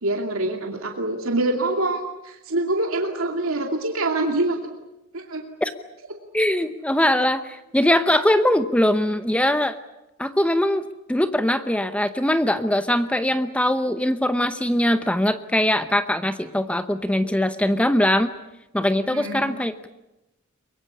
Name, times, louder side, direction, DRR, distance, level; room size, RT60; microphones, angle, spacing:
voice 1, 0.0-4.6 5.1-5.4 19.0-19.5, right 2 dB, 75° right, 3 dB, 2.6 m, -25 dB
voice 2, 6.3-9.7 10.2-18.3 18.7-19.9, left 1 dB, 5° left, 10 dB, 0.8 m, -21 dB
23.5 x 23.0 x 8.5 m, 0.94 s
head